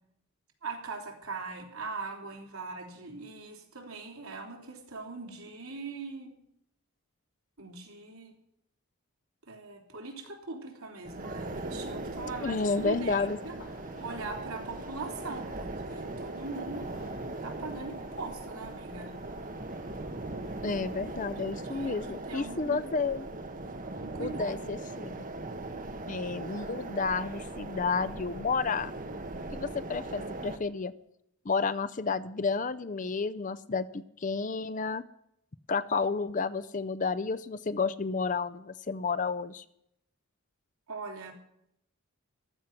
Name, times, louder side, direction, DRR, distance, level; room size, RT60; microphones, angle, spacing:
voice 1, 0.6-6.3 7.6-8.3 9.5-13.6 14.0-16.9 17.4-19.1 21.7-22.8 24.0-24.7 40.9-41.3, right 3 dB, 75° right, 3 dB, 3.3 m, -41 dB
sound 1, 11.0-30.6, right 2 dB, 35° right, 1.2 m, -39 dB
voice 2, 12.2-13.4 20.6-23.3 24.2-25.2 26.1-28.9 29.5-30.9 31.5-35.0 35.7-39.6, left 4 dB, 35° left, 14 dB, 0.5 m, -31 dB
sound 2, 12.6-20.6, left 1 dB, 60° left, 3.5 m, -55 dB
15.0 x 12.0 x 5.9 m, 0.77 s
head